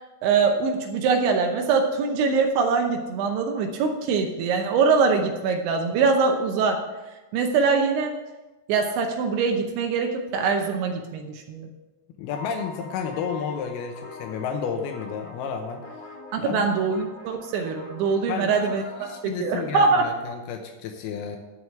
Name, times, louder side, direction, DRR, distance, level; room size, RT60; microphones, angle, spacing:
voice 1, 0.2-6.8 7.3-8.1 8.7-11.7 16.3-20.1, right 5 dB, 80° right, 3 dB, 3.1 m, -23 dB
voice 2, 12.2-15.8 16.4-16.7 18.3-18.7 19.0-21.4, left 6 dB, 90° left, 4 dB, 2.2 m, -31 dB
sound 1, 12.3-19.2, left 3 dB, 65° left, 4.0 m, -43 dB
12.0 x 4.8 x 7.0 m, 1.1 s
omnidirectional pair, 5.5 m